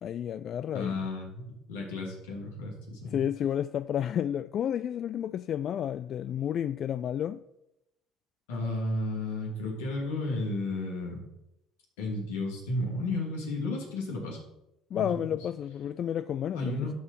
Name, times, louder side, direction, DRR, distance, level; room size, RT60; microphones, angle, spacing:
voice 1, 0.0-1.0 3.0-7.4 14.9-16.9, left 9 dB, 55° left, 0.3 m, -31 dB
voice 2, 0.7-3.2 8.5-11.2 12.0-14.4 14.9-15.1 16.5-16.9, left 2 dB, 85° left, 2.7 m, -33 dB
12.5 x 4.5 x 5.4 m
hypercardioid pair, 70°, 0 cm